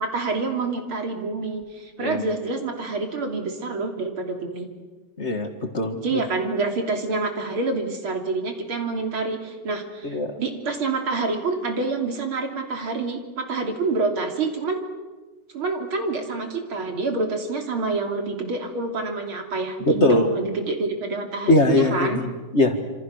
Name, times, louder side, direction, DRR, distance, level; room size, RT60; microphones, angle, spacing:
voice 1, 0.0-4.7 6.0-14.8 15.5-22.2, right 3 dB, 85° right, 4 dB, 4.0 m, -27 dB
voice 2, 5.2-5.5 5.7-6.2 10.0-10.4 19.8-20.3 21.5-22.8, left 1 dB, 35° left, 6 dB, 2.2 m, -21 dB
27.5 x 27.5 x 6.5 m, 1.3 s
omnidirectional pair, 2.3 m